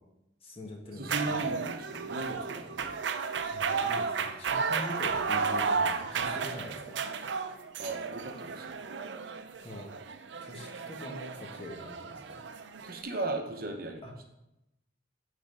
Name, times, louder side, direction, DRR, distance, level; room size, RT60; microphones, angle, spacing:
voice 1, 0.4-1.4 3.5-7.0 9.6-9.9 10.4-12.4 14.0-14.1, left 1 dB, 30° left, 0 dB, 1.5 m, -43 dB
voice 2, 1.0-3.0 7.8-8.8 12.8-14.0, right 2 dB, 55° right, 3 dB, 0.9 m, -37 dB
sound 1, 1.0-13.0, right 5 dB, 75° right, 0.5 m, -33 dB
9.1 x 4.1 x 5.3 m, 0.91 s
head